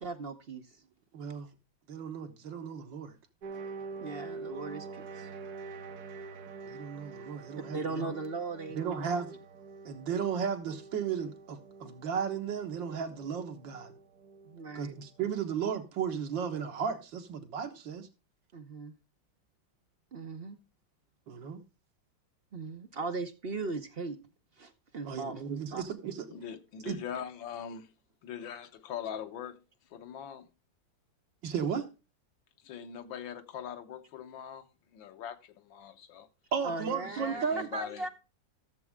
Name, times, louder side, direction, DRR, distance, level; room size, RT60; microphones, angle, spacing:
voice 1, 0.0-0.8 4.0-5.3 7.7-9.2 14.4-15.0 18.5-18.9 20.1-20.6 22.5-24.2 24.6-25.4 25.7-25.8 36.6-37.5 37.7-38.1, right 3 dB, 45° right, 0.8 m, -38 dB
voice 2, 1.1-1.5 1.9-3.2 6.7-8.1 8.7-9.3 9.9-13.9 14.8-18.1 21.3-21.6 25.0-26.3 26.9-27.0 31.4-31.9 36.5-37.7, right 7 dB, 80° right, 2.1 m, -35 dB
sound 1, 3.4-15.5, right 4 dB, 60° right, 1.4 m, -46 dB
voice 3, 26.3-27.9 28.2-29.6 29.9-30.5 32.6-36.3 37.1-38.1, left 8 dB, 85° left, 1.7 m, -42 dB
14.0 x 7.3 x 3.5 m
omnidirectional pair, 2.0 m